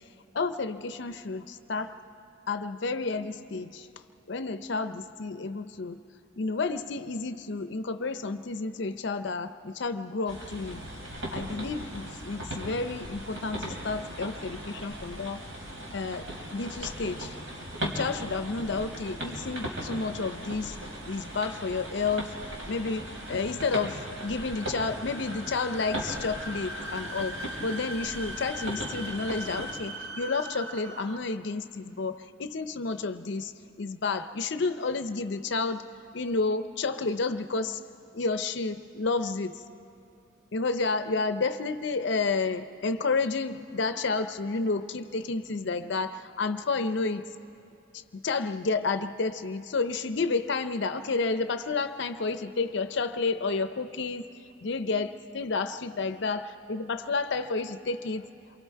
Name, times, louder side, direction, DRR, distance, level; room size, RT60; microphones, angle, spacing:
voice 1, 0.3-1.9 2.5-3.9 4.3-6.0 6.4-10.8 11.3-15.4 15.9-17.3 17.8-20.8 21.1-22.3 22.7-33.5 33.8-35.8 36.1-37.8 38.1-39.6 40.5-47.2 48.1-54.3 54.6-58.2, left 4 dB, 60° left, 10 dB, 0.6 m, -30 dB
sound 1, 10.3-29.7, right 1 dB, 75° right, 3.9 m, -38 dB
sound 2, 20.8-31.5, equal, 60° right, 1.0 m, -42 dB
28.0 x 24.0 x 4.6 m, 2.6 s
head